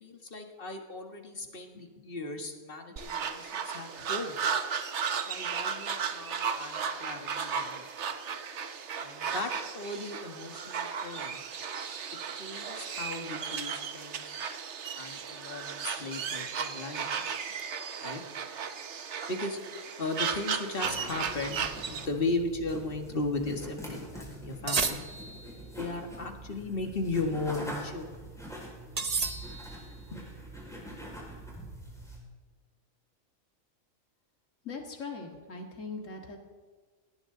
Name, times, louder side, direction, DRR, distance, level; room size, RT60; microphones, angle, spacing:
voice 1, 0.0-4.4 5.3-7.9 9.0-11.4 12.3-14.2 14.9-17.3 18.0-18.2 19.3-19.6 20.0-25.0 25.8-28.1 28.9-29.3 30.1-30.3, left 2 dB, 40° left, 4 dB, 1.9 m, -36 dB
sound 1, 3.0-22.1, right 6 dB, 60° right, 1.2 m, -35 dB
sound 2, 20.8-32.2, right 1 dB, ahead, 5.1 m, -44 dB
sound 3, 24.7-25.6 29.0-29.9, right 4 dB, 35° right, 0.9 m, -32 dB
voice 2, 34.6-36.4, left 4 dB, 65° left, 3 dB, 2.5 m, -40 dB
19.0 x 18.5 x 3.9 m, 1.4 s
omnidirectional pair, 1.4 m